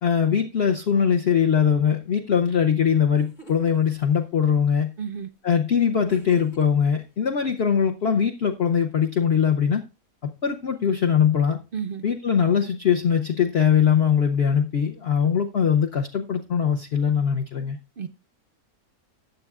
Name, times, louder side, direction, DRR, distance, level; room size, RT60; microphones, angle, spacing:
voice 1, 0.0-4.9 5.4-9.8 10.2-11.6 12.0-17.8, left 7 dB, 50° left, 0.9 m, -21 dB
sound 1, 2.8-2.9 3.1-3.8 6.1-6.9, right 3 dB, 30° left, 1.5 m, -43 dB
voice 2, 5.0-5.3 11.7-12.0 18.0-18.1, right 7 dB, 80° right, 0.5 m, -31 dB
15.0 x 9.2 x 2.4 m
omnidirectional pair, 1.7 m